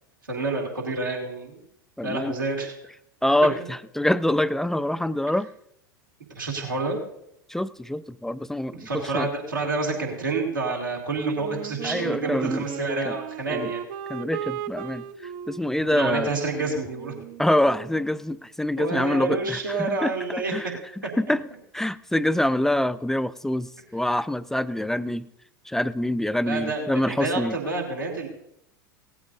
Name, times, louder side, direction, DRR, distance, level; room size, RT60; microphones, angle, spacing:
voice 1, 0.3-1.6 2.0-2.7 6.4-7.0 8.8-13.8 15.9-17.2 18.8-20.7 26.4-28.3, right 3 dB, 80° right, -1 dB, 2.6 m, -28 dB
voice 2, 2.0-2.3 3.2-5.5 7.5-9.3 11.8-12.7 13.5-13.7 14.1-15.0 15.5-16.3 17.4-20.1 20.5-21.4 21.7-25.3 25.7-27.6, left 1 dB, 5° left, 15 dB, 0.4 m, -25 dB
Wind instrument woodwind instrument, 11.3-18.0, right 10 dB, 50° right, 0.6 m, -36 dB
18.0 x 13.5 x 2.7 m, 0.78 s
figure-of-eight pair, 80°, 11 cm